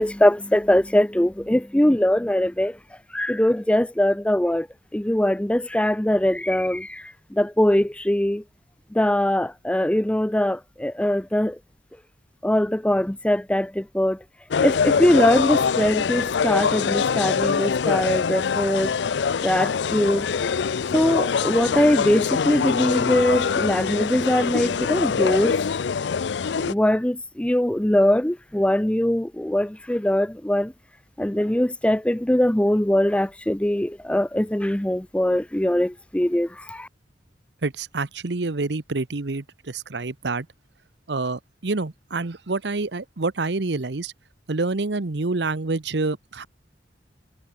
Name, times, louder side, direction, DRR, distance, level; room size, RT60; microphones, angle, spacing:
voice 1, 0.0-2.8 3.1-4.7 4.9-8.4 8.9-11.6 12.4-14.2 14.6-18.9 19.4-20.3 20.9-25.6 26.6-30.7 31.2-36.9, left 1 dB, 5° left, 0.5 m, -22 dB
sound 1, 14.5-26.7, left 6 dB, 80° left, 0.5 m, -24 dB
voice 2, 37.6-40.5 41.1-44.1 44.5-46.5, right 3 dB, 75° right, 1.0 m, -27 dB
head